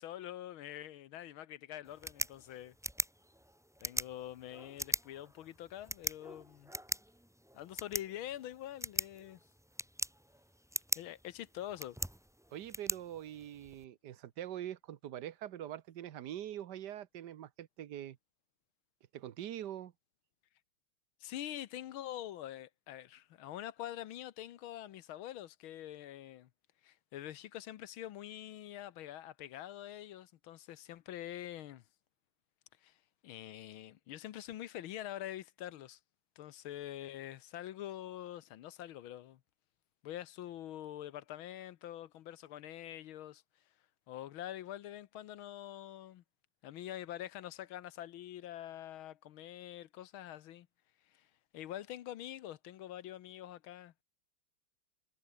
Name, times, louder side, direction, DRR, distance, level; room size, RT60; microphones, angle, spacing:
voice 1, 0.0-2.7 3.8-6.7 7.5-9.4 11.0-12.0 21.2-26.5 26.8-31.8 32.8-33.0 33.2-36.0 36.4-39.4 40.0-43.4 44.1-46.2 46.6-50.7 51.1-51.3 51.5-54.0, left 12 dB, 75° left, 1.6 m, -45 dB
sound 1, 1.8-13.8, equal, 5° right, 0.4 m, -42 dB
voice 2, 12.5-18.2 19.1-19.9, right 11 dB, 60° right, 1.4 m, -44 dB
omnidirectional pair, 2.4 m